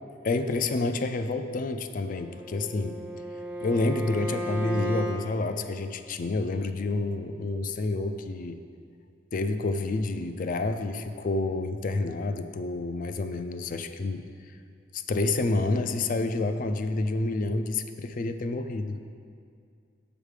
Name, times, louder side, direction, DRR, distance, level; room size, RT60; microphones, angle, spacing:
voice 1, 0.2-3.0 3.6-8.6 9.3-14.2 14.9-19.0, left 2 dB, 45° left, 9 dB, 0.4 m, -29 dB
Bowed string instrument, 2.1-5.2, right 1 dB, 10° right, 0.6 m, -34 dB
8.0 x 5.1 x 4.9 m, 2.3 s
head